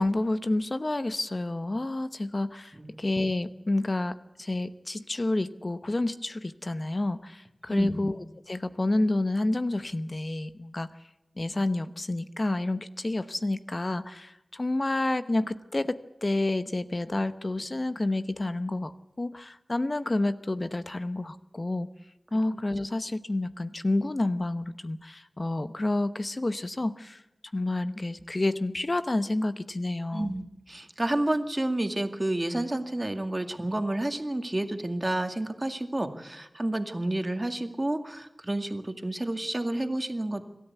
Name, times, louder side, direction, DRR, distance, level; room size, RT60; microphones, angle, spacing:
voice 1, 0.0-10.9 11.4-18.9 19.2-21.9 22.3-27.2 27.5-30.3, left 2 dB, 45° left, 12 dB, 0.9 m, -29 dB
voice 2, 7.7-8.0 30.1-40.5, right 1 dB, 30° right, 7 dB, 2.1 m, -30 dB
26.5 x 13.0 x 8.2 m, 0.94 s
wide cardioid pair, 55°, 0 cm